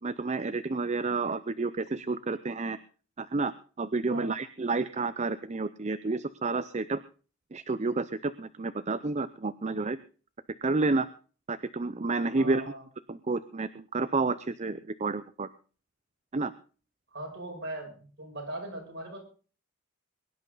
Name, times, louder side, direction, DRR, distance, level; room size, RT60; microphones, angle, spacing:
voice 1, 0.0-2.8 3.2-3.5 3.8-7.0 7.5-10.0 10.6-11.1 11.5-12.6 13.1-15.5 16.3-16.5, right 3 dB, 35° right, 12 dB, 0.6 m, -30 dB
voice 2, 12.4-12.8 17.1-19.2, right 1 dB, 55° right, 0 dB, 6.7 m, -39 dB
22.5 x 11.0 x 4.0 m, 0.39 s
head